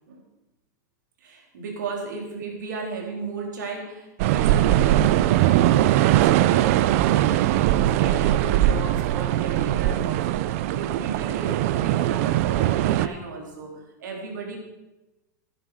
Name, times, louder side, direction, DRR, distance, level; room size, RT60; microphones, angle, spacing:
voice 1, 1.2-14.6, right 4 dB, 85° right, 1 dB, 3.6 m, -35 dB
sound 1, 4.2-13.1, right 13 dB, 50° right, 0.5 m, -21 dB
13.5 x 10.0 x 5.0 m, 1.0 s
supercardioid pair, 150°, 10 cm